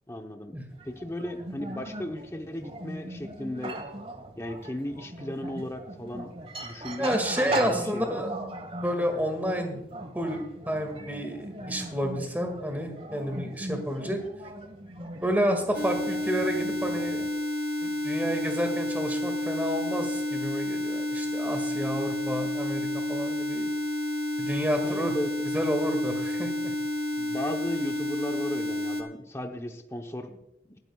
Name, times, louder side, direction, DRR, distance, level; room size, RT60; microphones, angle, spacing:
voice 1, 0.1-0.5 0.8-3.8 4.4-6.3 6.6-7.2 7.5-8.2 24.8-25.5 27.2-30.8, left 1 dB, 15° left, 4 dB, 0.8 m, -36 dB
sound 1, 0.7-17.3, right 1 dB, 35° right, 1.3 m, -39 dB
voice 2, 7.0-8.3 8.8-9.8 10.1-14.2 15.2-17.2 17.8-23.7 24.4-25.1 25.5-26.7, equal, 10° right, 5 dB, 1.9 m, -30 dB
sound 2, 15.7-29.0, left 1 dB, 70° right, 1.1 m, -30 dB
19.5 x 12.0 x 2.3 m, 0.91 s
head